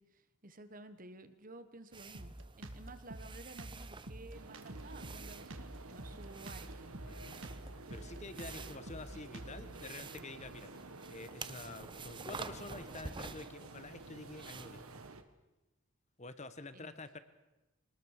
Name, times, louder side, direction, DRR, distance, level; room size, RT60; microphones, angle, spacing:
voice 1, 0.0-6.7 16.7-17.0, right 2 dB, 40° right, 11 dB, 1.3 m, -53 dB
sound 1, 1.9-15.1, right 4 dB, 20° right, 0.8 m, -50 dB
Drum kit, 2.1-9.8, right 1 dB, 60° right, 1.8 m, -48 dB
sound 2, 4.3-15.2, right 3 dB, 80° right, 1.6 m, -52 dB
voice 2, 7.0-7.4 7.9-10.7 11.1-14.9 16.2-17.2, left 2 dB, 30° left, 11 dB, 1.2 m, -48 dB
25.0 x 19.5 x 6.7 m, 1.0 s
head